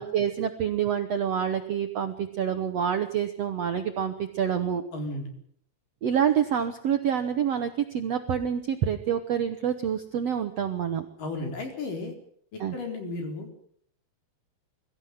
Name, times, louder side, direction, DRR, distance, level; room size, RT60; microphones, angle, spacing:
voice 1, 0.0-4.8 6.0-11.0 12.6-12.8, right 8 dB, 65° right, 7 dB, 1.7 m, -27 dB
voice 2, 4.9-5.3 11.2-12.2 12.5-13.5, left 2 dB, 60° left, 4 dB, 6.0 m, -34 dB
23.5 x 14.5 x 9.5 m, 0.64 s
omnidirectional pair, 4.4 m